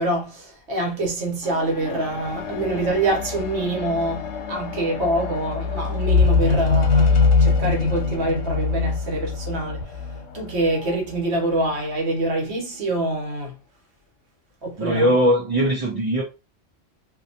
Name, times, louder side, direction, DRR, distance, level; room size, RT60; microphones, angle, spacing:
voice 1, 0.0-9.8 10.3-13.5 14.6-15.1, right 2 dB, 80° right, 1.2 m, -25 dB
sound 1, 1.4-11.0 11.8-11.9, left 4 dB, 90° left, 0.9 m, -23 dB
voice 2, 14.8-16.2, equal, 40° right, 0.6 m, -20 dB
2.6 x 2.3 x 2.7 m
omnidirectional pair, 1.1 m